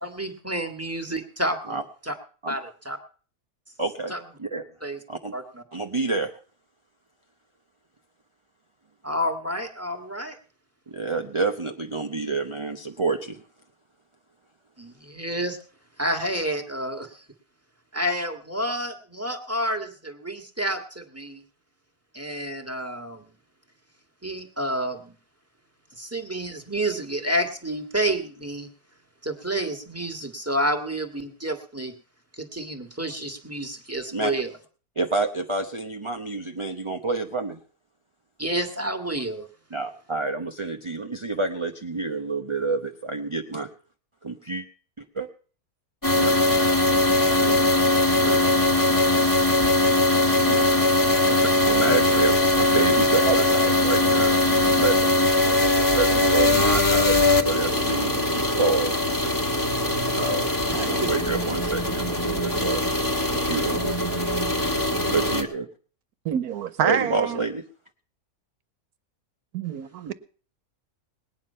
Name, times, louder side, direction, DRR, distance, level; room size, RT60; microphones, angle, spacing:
voice 1, 0.0-1.8 2.1-2.2 2.5-3.0 4.1-4.2 4.8-5.0 5.3-5.6 9.0-10.4 14.8-15.6 16.0-17.2 17.9-21.4 22.1-23.3 24.2-25.1 26.0-28.7 29.2-31.9 32.4-34.5 38.4-39.5 60.7-61.1, right 1 dB, 10° right, 4 dB, 1.6 m, -29 dB
voice 2, 3.8-4.6 5.1-5.3 5.7-6.3 10.9-13.4 34.1-34.3 35.0-37.6 39.7-43.7 44.2-44.6 45.1-45.3 46.1-46.3 47.4-47.6 48.2-48.4 50.3-50.8 51.2-55.1 55.9-58.9 59.2-59.3 60.1-62.8 63.3-64.0 64.6-64.7 65.0-65.7 66.8-67.6, right 3 dB, 25° right, 4 dB, 0.7 m, -28 dB
sound 1, 46.0-65.4, left 2 dB, 15° left, 1.5 m, -21 dB
voice 3, 66.2-67.4 69.5-70.1, right 9 dB, 80° right, 14 dB, 1.3 m, -27 dB
19.5 x 9.4 x 5.6 m, 0.42 s
omnidirectional pair, 1.6 m